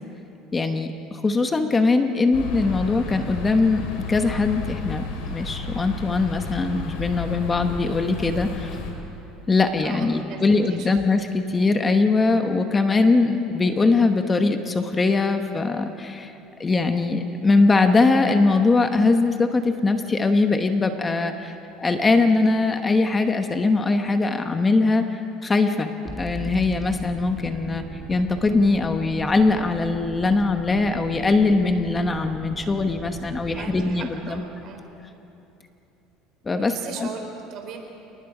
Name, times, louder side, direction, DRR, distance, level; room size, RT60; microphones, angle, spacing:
voice 1, 0.5-8.8 9.5-16.3 16.6-21.5 21.8-25.1 25.4-25.9 26.2-27.8 28.1-34.7 36.5-37.1, left 3 dB, 20° left, 7 dB, 1.1 m, -21 dB
sound 1, 2.3-8.9, left 3 dB, 80° left, 3.9 m, -32 dB
voice 2, 9.8-10.4 10.7-10.9 33.5-34.8 36.6-37.8, right 6 dB, 55° right, 4 dB, 3.7 m, -37 dB
sound 2, 26.1-33.8, right 2 dB, ahead, 2.5 m, -39 dB
28.5 x 19.5 x 5.0 m, 2.9 s
supercardioid pair, 125°, 0 cm